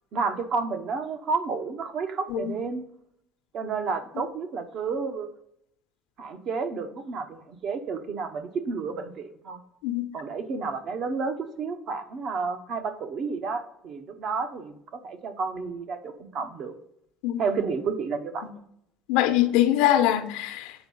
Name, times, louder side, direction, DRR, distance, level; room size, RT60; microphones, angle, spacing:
voice 1, 0.1-2.8 3.5-5.3 6.2-9.6 10.1-16.8 17.4-18.5, right 4 dB, 45° right, 0.8 m, -31 dB
voice 2, 17.2-17.6 19.1-20.7, left 12 dB, 85° left, 0.8 m, -23 dB
7.9 x 4.7 x 5.4 m
cardioid pair, 155°, 0 cm